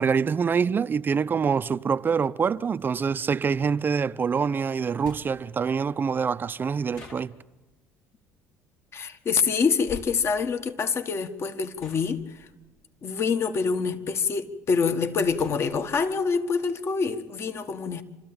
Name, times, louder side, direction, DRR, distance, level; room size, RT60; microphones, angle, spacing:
voice 1, 0.0-7.3, right 6 dB, 35° right, 0.6 m, -25 dB
sound 1, 5.0-5.6 6.9-7.7 9.8-10.3 11.2-11.4 11.8-14.1 14.6-16.1, left 5 dB, 65° left, 4.0 m, -47 dB
voice 2, 8.9-12.5 13.0-18.0, left 5 dB, 45° left, 1.5 m, -26 dB
27.0 x 13.5 x 8.9 m
supercardioid pair, 75°, 6 cm